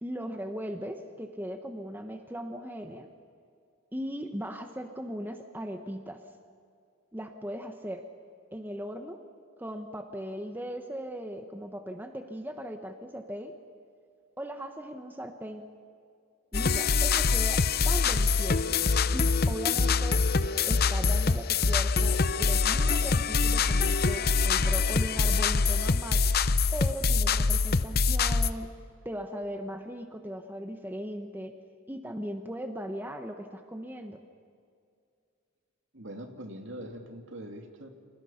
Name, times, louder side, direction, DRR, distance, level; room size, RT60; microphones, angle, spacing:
voice 1, 0.0-3.1 3.9-6.2 7.1-8.0 8.5-9.2 9.6-13.6 14.4-15.6 16.5-18.8 19.1-20.2 20.6-26.2 26.7-28.7 29.0-31.5 31.9-34.2, equal, 10° right, 5 dB, 1.2 m, -38 dB
sound 1, 16.5-28.5, left 4 dB, 50° left, 0.7 m, -25 dB
voice 2, 35.9-37.9, right 1 dB, 60° right, 4 dB, 2.8 m, -42 dB
29.5 x 27.0 x 5.8 m, 2.3 s
head